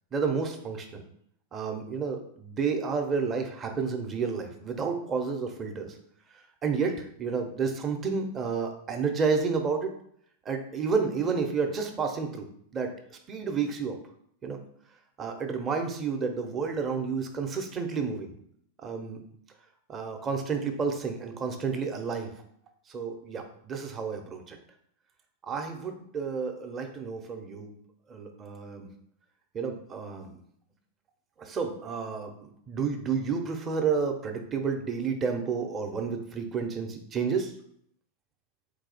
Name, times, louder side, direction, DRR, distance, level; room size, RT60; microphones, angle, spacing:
voice 1, 0.1-1.0 1.5-6.0 6.3-9.9 10.4-14.0 14.4-14.6 15.2-18.3 18.8-19.2 19.9-22.3 22.9-24.6 25.4-27.7 28.1-28.9 29.5-30.4 31.4-37.5, right 5 dB, 25° right, 4 dB, 0.7 m, -31 dB
3.8 x 2.7 x 4.0 m, 0.68 s
figure-of-eight pair, 90°, 0 cm